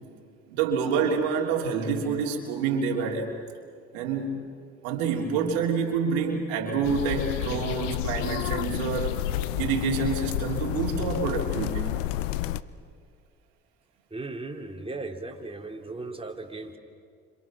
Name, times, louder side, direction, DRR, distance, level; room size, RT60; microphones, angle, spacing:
voice 1, 0.5-3.3 3.9-4.4 4.8-9.2 9.6-11.9, right 5 dB, 80° right, -1 dB, 3.3 m, -27 dB
sound 1, 6.8-12.6, left 14 dB, 85° left, 0.7 m, -30 dB
voice 2, 14.1-16.8, right 3 dB, 15° right, 3 dB, 3.4 m, -37 dB
30.0 x 27.0 x 6.2 m, 2.2 s
hypercardioid pair, 65°, 37 cm